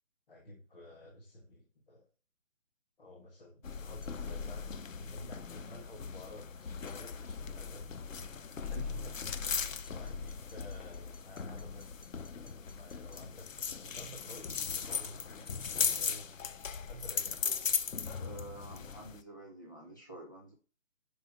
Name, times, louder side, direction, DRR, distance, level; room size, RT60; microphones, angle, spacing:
voice 1, 0.3-2.1 3.0-7.9 8.7-9.1 9.9-15.5 15.8-16.3 16.9-17.5, left 1 dB, 45° left, 1 dB, 1.5 m, -51 dB
sound 1, 3.6-19.2, left 6 dB, 80° left, 0.8 m, -38 dB
sound 2, 4.0-4.3 6.9-7.1 9.6-13.4, left 2 dB, 60° left, 1.8 m, -63 dB
voice 2, 18.2-20.5, right 1 dB, 15° left, 0 dB, 0.7 m, -49 dB
5.4 x 4.2 x 5.4 m, 0.36 s
hypercardioid pair, 170°, 39 cm